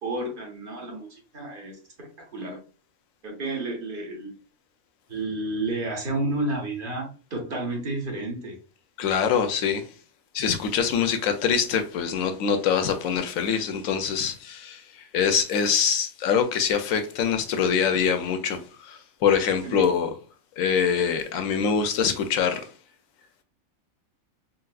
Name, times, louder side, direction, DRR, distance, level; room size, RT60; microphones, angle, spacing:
voice 1, 0.0-2.6 3.2-4.3 5.1-8.6 19.6-19.9, right 2 dB, 45° right, 1.1 m, -31 dB
voice 2, 9.0-9.8 10.3-14.8 15.1-20.1 20.6-22.7, left 7 dB, 80° left, 1.0 m, -24 dB
3.9 x 2.1 x 2.3 m
omnidirectional pair, 1.4 m